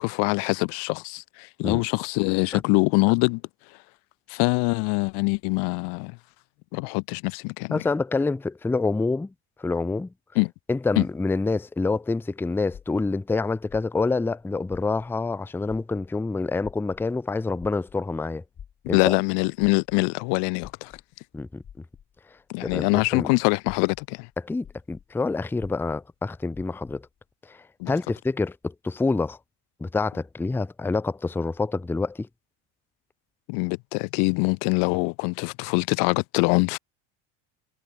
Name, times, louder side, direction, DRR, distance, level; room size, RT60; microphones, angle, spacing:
voice 1, 0.0-3.4 4.3-6.1 6.7-7.8 10.4-10.5 11.0-11.1 18.8-20.9 22.5-24.3 27.8-27.9 33.5-36.8, left 35 dB, 80° left, 0.9 m, -24 dB
voice 2, 7.7-9.3 9.6-10.1 10.7-18.4 18.9-19.2 21.3-21.6 22.6-23.3 24.4-27.1 27.5-29.4 29.8-32.3, left 3 dB, 5° left, 0.5 m, -27 dB
sound 1, 12.7-15.4 15.6-23.2 23.6-27.1, left 8 dB, 35° left, 7.7 m, -49 dB
cardioid pair, 130°, 40 cm